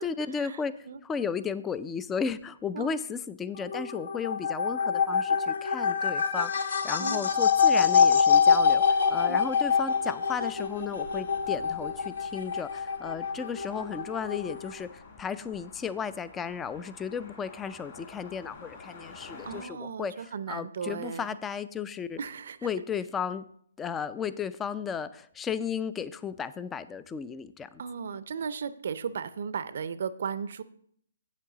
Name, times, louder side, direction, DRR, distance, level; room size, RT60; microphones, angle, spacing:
voice 1, 0.0-22.2 22.6-23.5 23.8-27.8, left 6 dB, 10° left, 15 dB, 0.3 m, -34 dB
sound 1, 3.6-14.8, left 6 dB, 60° left, 1.0 m, -25 dB
sound 2, 6.8-19.6, left 4 dB, 35° left, 2.6 m, -51 dB
voice 2, 19.4-21.3 22.2-22.6 27.8-30.6, right 6 dB, 55° right, 15 dB, 0.5 m, -35 dB
8.4 x 7.4 x 3.9 m, 0.67 s
figure-of-eight pair, 140°, 0 cm